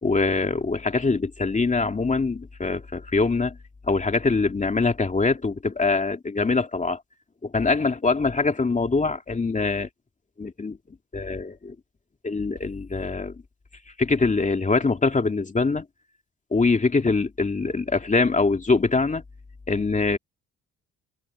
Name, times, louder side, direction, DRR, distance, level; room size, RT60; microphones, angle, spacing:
voice 1, 0.0-3.6 3.9-7.0 7.4-9.9 10.4-10.8 11.1-11.7 12.2-13.3 14.0-15.9 16.5-19.2 19.7-20.2, left 3 dB, 25° left, 2.7 m, -23 dB
cardioid pair, 90°, 30 cm